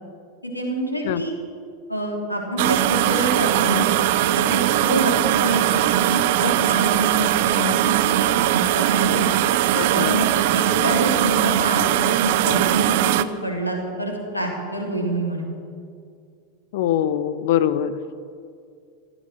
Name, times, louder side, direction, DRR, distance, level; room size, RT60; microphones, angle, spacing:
voice 1, 0.4-1.3 1.9-3.9 4.3-9.3 9.9-15.5, right 1 dB, 90° left, 0 dB, 3.3 m, -26 dB
sound 1, 2.6-13.2, right 13 dB, 55° right, 0.6 m, -20 dB
voice 2, 9.7-10.2 16.7-17.9, left 10 dB, 55° left, 14 dB, 0.9 m, -23 dB
15.5 x 14.0 x 6.6 m, 2.3 s
figure-of-eight pair, 90°, 0 cm